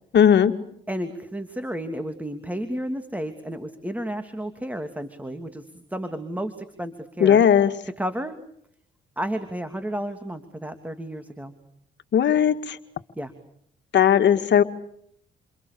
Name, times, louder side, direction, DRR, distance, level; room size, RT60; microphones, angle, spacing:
voice 1, 0.1-0.5 7.2-7.7 12.1-12.8 13.9-14.6, left 9 dB, 65° left, 7 dB, 2.1 m, -17 dB
voice 2, 0.9-5.6 5.9-7.4 8.0-8.4 9.2-11.5 13.2-13.3, right 1 dB, 5° right, 8 dB, 3.0 m, -32 dB
29.5 x 28.5 x 7.0 m, 0.69 s
cardioid pair, 90°, 20 cm